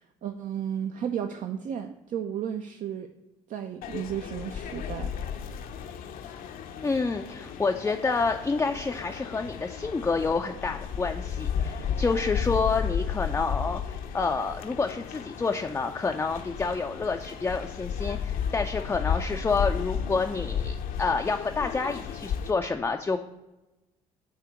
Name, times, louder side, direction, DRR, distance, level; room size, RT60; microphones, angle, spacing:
voice 1, 0.2-3.1 3.5-5.1, right 9 dB, 45° right, 6 dB, 0.5 m, -33 dB
sound 1, 3.8-22.5, left 7 dB, 55° left, 0.6 m, -33 dB
voice 2, 6.8-23.2, left 4 dB, 15° left, 4 dB, 0.4 m, -28 dB
7.6 x 2.8 x 4.6 m, 1.0 s
hypercardioid pair, 60°, 17 cm